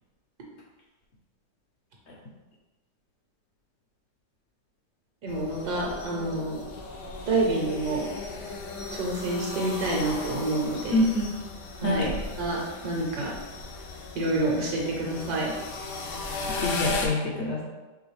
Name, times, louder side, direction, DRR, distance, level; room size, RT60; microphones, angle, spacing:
voice 1, 5.2-6.6 7.3-8.1 8.9-11.0 11.8-12.0 12.4-13.3 14.1-15.5, right 2 dB, 75° right, -2 dB, 1.4 m, -28 dB
sound 1, 5.3-17.1, left 3 dB, 85° left, 1.2 m, -36 dB
voice 2, 10.9-11.2 11.8-12.2 16.3-17.6, left 1 dB, 65° left, -1 dB, 0.6 m, -26 dB
4.8 x 3.0 x 3.1 m, 1.2 s
omnidirectional pair, 1.8 m